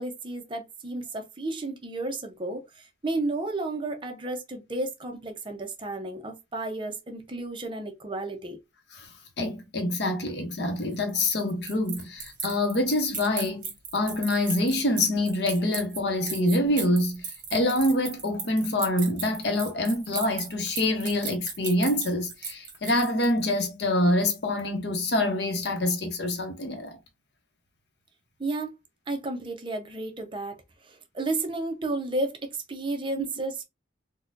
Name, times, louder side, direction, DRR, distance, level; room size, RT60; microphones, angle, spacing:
voice 1, 0.0-8.6 28.4-28.7 29.1-33.6, right 2 dB, 30° right, 0.6 m, -32 dB
voice 2, 9.4-27.0 33.2-33.3, left 1 dB, 65° left, 0.8 m, -26 dB
sound 1, 10.9-23.5, right 6 dB, 50° right, 1.3 m, -37 dB
4.1 x 2.2 x 2.5 m
head